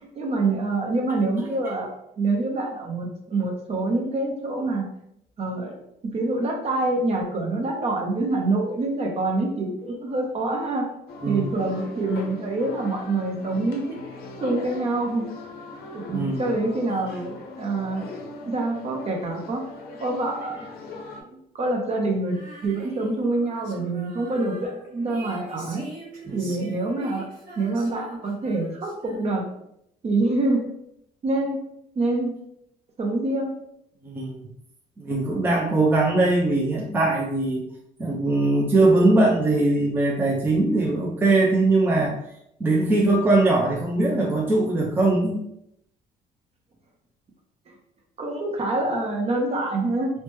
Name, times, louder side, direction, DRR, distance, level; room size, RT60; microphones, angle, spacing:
voice 1, 0.0-1.9 2.2-4.9 5.4-5.8 6.1-10.8 11.3-14.0 14.4-15.3 15.9-18.1 18.4-19.6 20.0-20.7 21.3-22.4 22.6-25.9 26.3-27.3 27.6-29.4 30.0-30.7 31.2-31.6 32.0-32.3 33.0-33.5 48.2-50.1, right 2 dB, 35° right, 1 dB, 0.7 m, -26 dB
sound 1, 11.1-21.2, left 2 dB, 65° left, 0.6 m, -40 dB
voice 2, 16.1-16.5 26.3-26.4 34.0-34.4 35.0-37.7 38.0-42.2 42.6-45.4, right 2 dB, 10° right, -2 dB, 0.4 m, -21 dB
Female singing, 22.3-29.6, right 2 dB, 55° right, 1.3 m, -43 dB
3.1 x 2.1 x 3.1 m, 0.77 s
cardioid pair, 110°, 17 cm